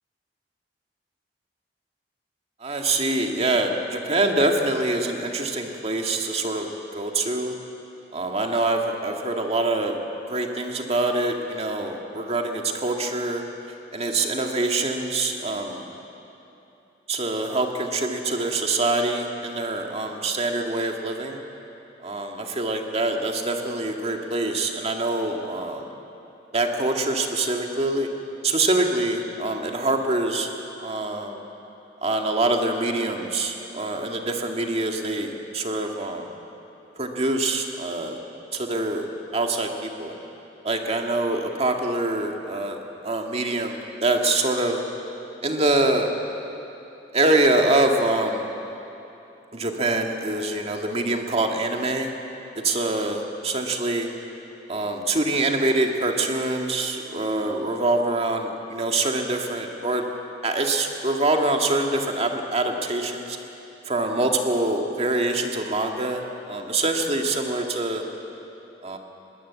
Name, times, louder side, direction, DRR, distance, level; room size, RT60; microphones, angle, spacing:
voice 1, 2.6-6.7 6.9-7.5 8.1-10.0 10.3-13.4 13.9-15.8 17.1-21.4 22.0-25.8 26.5-28.1 28.4-30.5 30.8-31.4 32.0-36.3 37.0-38.2 38.5-39.1 39.3-40.1 40.6-42.8 43.0-44.8 45.4-46.1 47.1-48.4 49.5-52.1 52.6-54.1 54.7-60.0 60.4-63.4 63.9-68.0 68.8-69.0, right 2 dB, 35° right, 3 dB, 2.0 m, -25 dB
21.0 x 19.5 x 8.4 m, 2.9 s
head